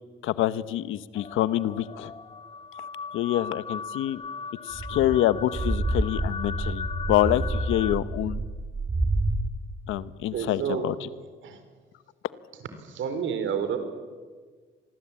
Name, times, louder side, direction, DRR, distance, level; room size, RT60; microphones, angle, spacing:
voice 1, 0.2-2.1 3.1-4.2 4.7-8.4 9.9-11.1, left 13 dB, 90° left, 16 dB, 1.0 m, -26 dB
sound 1, 1.2-8.0, left 5 dB, 30° left, 1.7 m, -38 dB
sound 2, 4.7-9.4, right 2 dB, 30° right, 6.1 m, -28 dB
voice 2, 10.3-10.9 11.4-11.6 12.8-13.8, right 7 dB, 75° right, 9 dB, 4.3 m, -29 dB
26.5 x 19.5 x 8.8 m, 1.5 s
cardioid pair, 90°, 20 cm